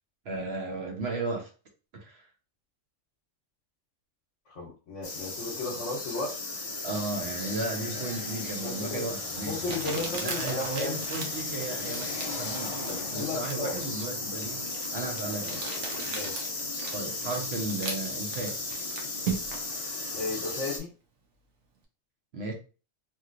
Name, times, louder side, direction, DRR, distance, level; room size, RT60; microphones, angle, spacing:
voice 1, 0.2-1.5 1.9-2.3 6.8-9.6 10.2-14.6 14.9-15.6 16.9-18.5 22.3-22.5, right 3 dB, 55° right, 2 dB, 1.0 m, -35 dB
voice 2, 4.5-6.4 8.6-9.1 9.4-11.0 12.9-13.8 16.1-16.5 20.1-20.9, left 3 dB, 65° left, -3 dB, 1.1 m, -35 dB
sound 1, 5.0-20.8, left 3 dB, 40° left, 0.5 m, -35 dB
Crumpling crinkling, 8.7-8.8 9.7-19.7, right 5 dB, 80° right, 1.1 m, -39 dB
2.9 x 2.8 x 2.5 m, 0.35 s
omnidirectional pair, 1.3 m